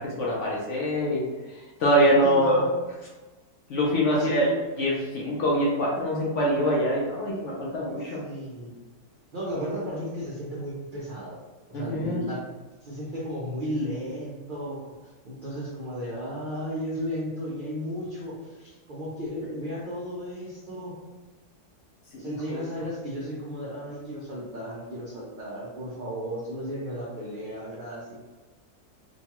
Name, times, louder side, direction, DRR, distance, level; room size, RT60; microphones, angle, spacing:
voice 1, 0.0-2.6 3.7-4.5 4.8-8.2 11.7-12.2 22.1-22.6, equal, 65° left, -4 dB, 0.8 m, -24 dB
voice 2, 2.2-2.7 4.1-4.5 7.6-7.7 8.2-8.8 9.3-11.4 11.7-12.4 12.8-20.9 22.2-28.2, equal, 75° right, -6 dB, 0.4 m, -34 dB
3.0 x 2.3 x 2.9 m, 1.2 s
omnidirectional pair, 1.7 m